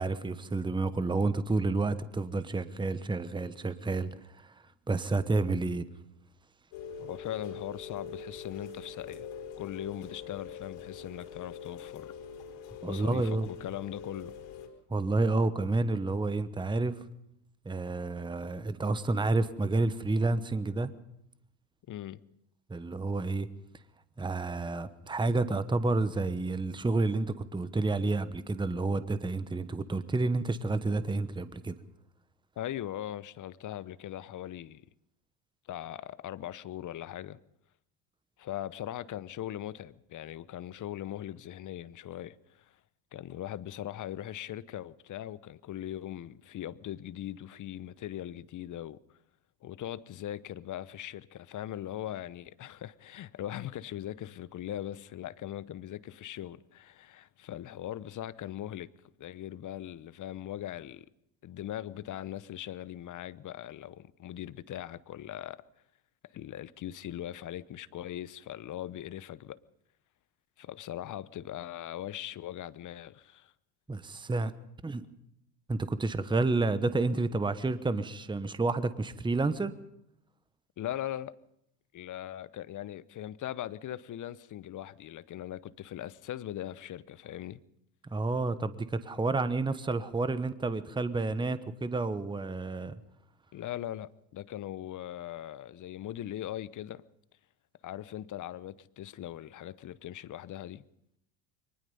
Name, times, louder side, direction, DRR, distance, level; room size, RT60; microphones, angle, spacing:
voice 1, 0.0-4.1 4.4-4.5 4.9-5.8 12.8-13.5 14.9-16.9 17.6-20.9 22.7-23.5 24.2-31.8 73.9-74.5 74.8-75.0 75.7-79.7 88.0-93.0, right 3 dB, 10° right, 1.1 m, -30 dB
Rain, 6.7-14.7, left 6 dB, 65° left, 5.1 m, -44 dB
voice 2, 7.0-9.3 9.6-12.1 12.9-14.3 21.9-22.2 32.6-34.8 35.7-37.4 38.4-42.8 43.1-49.0 49.6-58.9 59.2-61.1 61.4-65.6 66.2-69.6 70.6-73.5 80.8-81.4 81.9-87.6 93.5-97.0 97.8-100.8, left 12 dB, 40° left, 0.9 m, -40 dB
23.5 x 20.0 x 5.5 m
hypercardioid pair, 75°, 50 cm